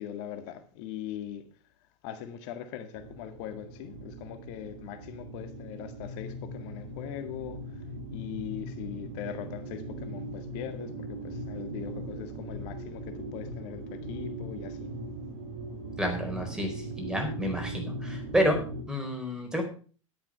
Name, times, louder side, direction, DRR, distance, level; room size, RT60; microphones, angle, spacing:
voice 1, 0.0-1.5 2.0-7.8 8.1-14.9, left 10 dB, 50° left, 1.8 m, -41 dB
sound 1, 2.9-18.8, right 1 dB, 65° right, 3.5 m, -39 dB
voice 2, 16.0-18.6 18.9-19.6, equal, 5° right, 4.3 m, -29 dB
11.0 x 8.6 x 5.9 m
hypercardioid pair, 95°, 17 cm